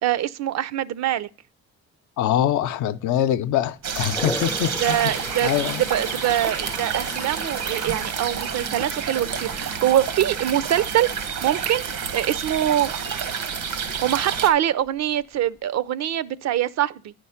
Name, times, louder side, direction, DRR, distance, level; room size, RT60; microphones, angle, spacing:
voice 1, 0.0-1.3 4.8-5.5 5.8-11.1 11.4-12.9 14.0-17.1, right 12 dB, 60° right, 0.5 m, -23 dB
voice 2, 2.2-5.1 5.4-5.9, left 11 dB, 80° left, 0.6 m, -24 dB
sound 1, 3.8-14.5, right 6 dB, 85° right, 1.3 m, -29 dB
Toilet flush, 4.1-9.2 9.6-10.0 14.5-14.6 14.9-15.6, left 3 dB, 10° left, 0.3 m, -36 dB
9.7 x 5.3 x 5.6 m
cardioid pair, 90°, 30 cm